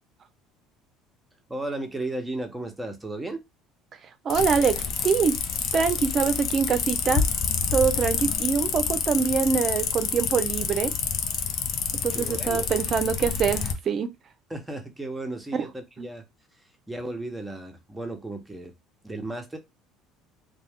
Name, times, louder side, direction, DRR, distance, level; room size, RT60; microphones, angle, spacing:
voice 1, 1.5-3.4 12.1-12.7 14.5-16.2 16.9-18.7 19.0-19.6, right 2 dB, 10° right, 0.9 m, -34 dB
voice 2, 4.2-5.4 5.7-7.3 7.7-10.9 11.9-14.1 16.0-16.1, right 6 dB, 45° right, 0.6 m, -24 dB
sound 1, 4.3-13.7, left 6 dB, 60° left, 0.5 m, -28 dB
2.3 x 2.2 x 3.5 m
hypercardioid pair, 75°, 0 cm